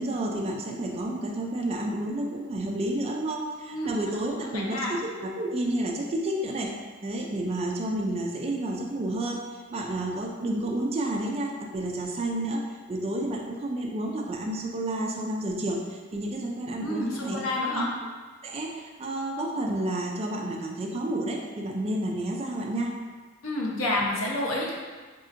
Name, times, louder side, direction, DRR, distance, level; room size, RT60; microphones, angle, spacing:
voice 1, 0.0-6.7 7.0-17.4 17.7-17.9 18.4-23.0, right 1 dB, 30° right, 1 dB, 0.4 m, -30 dB
voice 2, 3.7-4.9 16.8-17.9 23.4-24.7, left 1 dB, 85° left, -2 dB, 0.7 m, -29 dB
4.1 x 2.8 x 2.5 m, 1.4 s
head